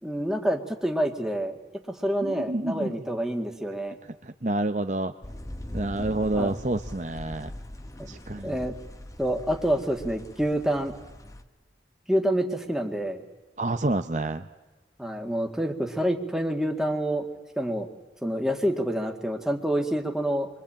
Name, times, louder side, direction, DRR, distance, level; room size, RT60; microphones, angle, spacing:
voice 1, 0.0-1.6 1.9-4.0 6.3-6.5 8.4-8.7 9.2-10.9 12.1-13.2 15.0-17.2 17.6-17.9 18.2-20.5, equal, 5° right, 3 dB, 2.0 m, -27 dB
voice 2, 2.2-2.9 4.2-5.1 5.7-7.5 8.1-8.7 13.6-14.4, right 2 dB, 40° right, 8 dB, 0.8 m, -28 dB
sound 1, 5.2-11.4, left 1 dB, 20° left, 1.2 m, -41 dB
28.5 x 23.5 x 8.8 m, 1.2 s
head